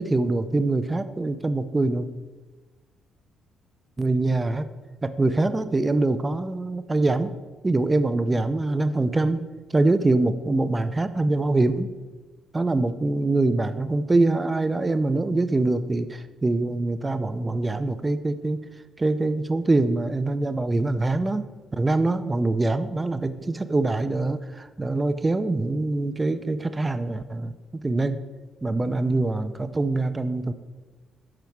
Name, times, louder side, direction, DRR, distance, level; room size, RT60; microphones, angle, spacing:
voice 1, 0.0-2.1 4.0-4.6 5.0-7.3 7.6-9.4 9.7-11.9 12.5-18.6 19.0-21.4 21.7-27.5 27.8-28.2 28.6-30.5, right 2 dB, 20° right, 11 dB, 0.5 m, -24 dB
12.5 x 4.7 x 4.6 m, 1.3 s
cardioid pair, 90°, 0 cm